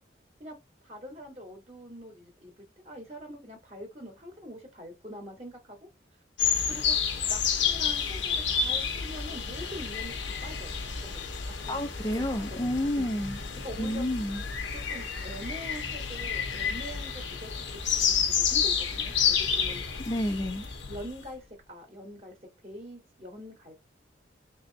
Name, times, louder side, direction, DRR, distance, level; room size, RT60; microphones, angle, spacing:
voice 1, 0.8-5.8 6.7-7.0 7.3-10.8 11.0-11.8 12.1-13.1 13.6-14.0 14.7-17.5 17.9-19.8 20.9-22.4 22.6-23.7, equal, 30° right, 1.7 m, -44 dB
sound 1, 6.4-21.1, left 7 dB, 80° left, 1.1 m, -30 dB
voice 2, 11.7-13.4 13.8-14.4 20.1-20.7, left 1 dB, 20° left, 0.5 m, -30 dB
3.8 x 3.4 x 2.9 m
head